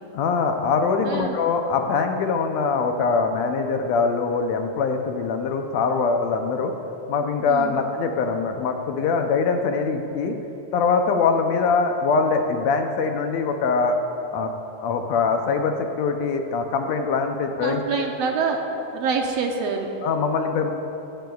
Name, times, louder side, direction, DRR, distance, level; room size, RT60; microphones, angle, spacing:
voice 1, 0.1-6.7 7.1-10.4 10.7-14.0 14.3-14.5 14.8-18.1 20.0-20.7, left 4 dB, 75° left, 5 dB, 1.8 m, -23 dB
voice 2, 17.6-18.6 18.9-19.9, right 5 dB, 75° right, 2 dB, 1.7 m, -25 dB
16.5 x 15.5 x 2.3 m, 2.9 s
omnidirectional pair, 3.3 m